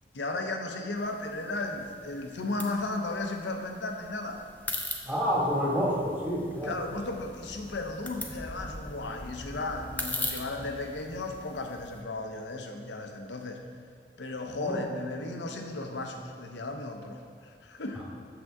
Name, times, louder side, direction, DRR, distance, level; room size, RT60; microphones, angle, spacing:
voice 1, 0.1-4.4 6.6-13.6 14.2-18.0, left 2 dB, 80° left, 4 dB, 0.7 m, -35 dB
sound 1, 1.0-12.0, left 2 dB, 10° left, 0.5 m, -41 dB
voice 2, 5.0-6.7 14.5-14.8, equal, 10° right, -5 dB, 1.3 m, -28 dB
7.8 x 6.8 x 3.6 m, 2.2 s
head